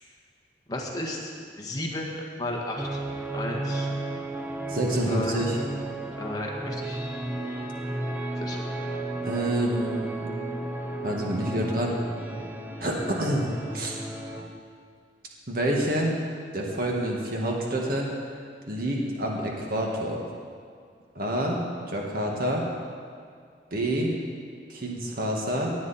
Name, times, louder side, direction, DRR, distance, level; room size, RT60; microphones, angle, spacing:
voice 1, 0.7-1.3 1.6-3.0 3.3-3.9 5.1-5.4 6.2-7.0 8.4-8.6 12.9-13.0, left 1 dB, 20° left, -2 dB, 1.7 m, -33 dB
sound 1, 2.8-14.5, right 2 dB, 10° right, 0.9 m, -33 dB
voice 2, 4.7-5.6 9.2-10.0 11.0-12.0 12.8-13.5 13.7-14.0 15.5-16.2 16.5-18.1 18.7-20.2 21.2-21.6 21.9-22.6 23.7-24.1 24.7-25.7, right 1 dB, 55° right, -1 dB, 1.8 m, -27 dB
18.0 x 9.3 x 4.3 m, 2.1 s
head